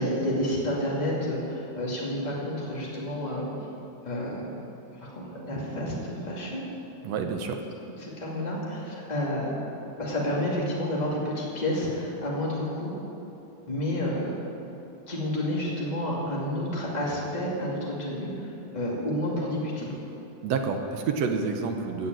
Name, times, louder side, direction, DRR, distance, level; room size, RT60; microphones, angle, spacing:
voice 1, 0.0-3.5 4.0-4.4 5.0-6.6 8.0-9.5 10.0-12.9 13.7-14.3 15.1-19.9, left 1 dB, 15° left, -5 dB, 2.3 m, -30 dB
voice 2, 7.0-7.6 20.4-22.1, right 5 dB, 70° right, 5 dB, 1.9 m, -28 dB
17.5 x 6.8 x 7.6 m, 2.9 s
omnidirectional pair, 3.4 m